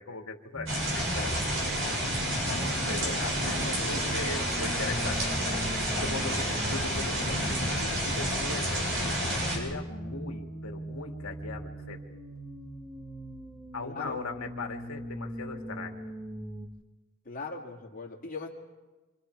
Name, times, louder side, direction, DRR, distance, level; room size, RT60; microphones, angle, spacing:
voice 1, 0.0-1.4 2.9-9.2 9.5-12.0 13.7-16.1, left 3 dB, 80° left, 2 dB, 2.4 m, -39 dB
sound 1, 0.5-16.7, equal, 15° right, 2.2 m, -41 dB
sound 2, 0.7-9.6, equal, 65° right, 8.0 m, -29 dB
voice 2, 13.8-14.2 17.2-18.5, left 4 dB, 40° left, -2 dB, 2.6 m, -39 dB
27.0 x 26.5 x 4.8 m, 1.2 s
head